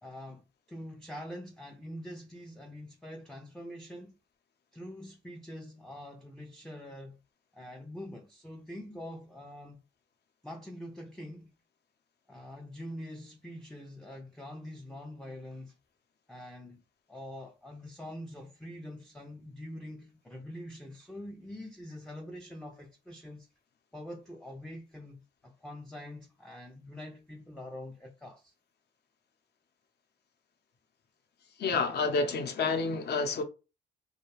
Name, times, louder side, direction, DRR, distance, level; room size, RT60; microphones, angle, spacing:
voice 1, 0.0-4.2 4.7-7.2 7.5-9.8 10.4-11.5 12.3-15.8 16.3-16.8 17.1-23.5 23.9-28.5, left 1 dB, 5° left, 0.4 m, -45 dB
voice 2, 31.6-33.4, left 4 dB, 55° left, 0.7 m, -29 dB
2.4 x 2.2 x 3.0 m
cardioid pair, 90°, 20 cm